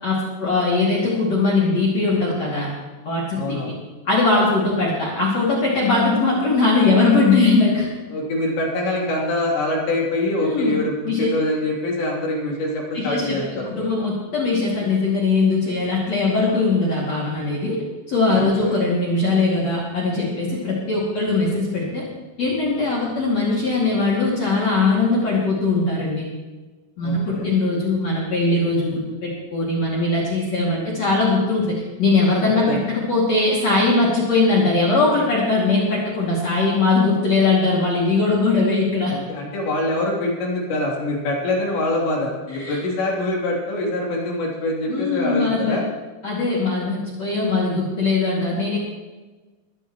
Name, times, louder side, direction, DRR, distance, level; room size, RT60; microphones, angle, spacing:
voice 1, 0.0-2.8 3.0-3.7 4.0-7.9 10.4-10.8 11.0-11.3 12.9-17.8 18.1-22.1 22.4-26.2 27.0-39.2 42.5-42.8 44.9-45.8 46.2-48.8, left 3 dB, 45° left, -6 dB, 3.2 m, -20 dB
voice 2, 3.3-3.7 8.1-13.9 18.3-18.8 27.0-27.5 32.7-32.8 39.1-45.8, left 1 dB, 80° left, -3 dB, 5.4 m, -24 dB
22.5 x 14.5 x 3.1 m, 1.3 s
omnidirectional pair, 5.0 m